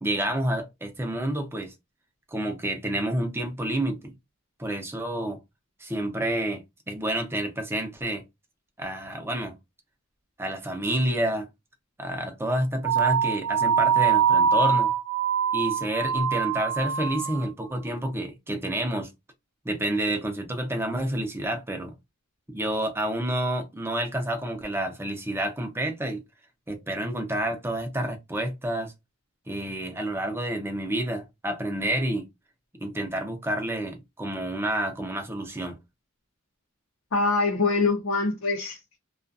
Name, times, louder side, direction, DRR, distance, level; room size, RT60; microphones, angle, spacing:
voice 1, 0.0-1.7 2.3-4.1 4.6-5.4 5.8-8.2 8.8-9.6 10.4-11.5 12.0-14.9 15.5-19.1 19.6-21.9 22.5-26.2 26.7-28.9 29.5-32.3 32.8-35.8, right 1 dB, 10° right, 0.6 m, -29 dB
sound 1, 12.8-17.5, right 7 dB, 90° right, 0.4 m, -23 dB
voice 2, 37.1-39.0, left 3 dB, 70° left, 0.7 m, -24 dB
2.4 x 2.3 x 2.5 m
head